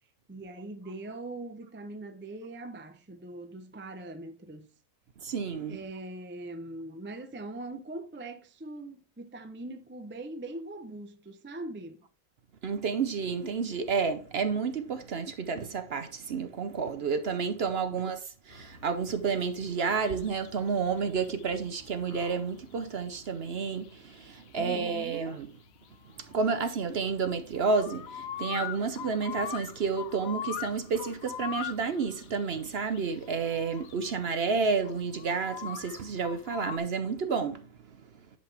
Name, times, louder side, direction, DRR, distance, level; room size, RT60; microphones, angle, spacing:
voice 1, 0.3-4.7 5.7-12.0 24.6-25.2, right 2 dB, 15° right, 0.4 m, -41 dB
voice 2, 5.2-5.8 12.6-25.5 26.2-37.7, right 5 dB, 55° right, 0.9 m, -30 dB
sound 1, 18.5-36.8, left 10 dB, 80° left, 1.1 m, -43 dB
10.5 x 5.4 x 3.3 m
omnidirectional pair, 1.5 m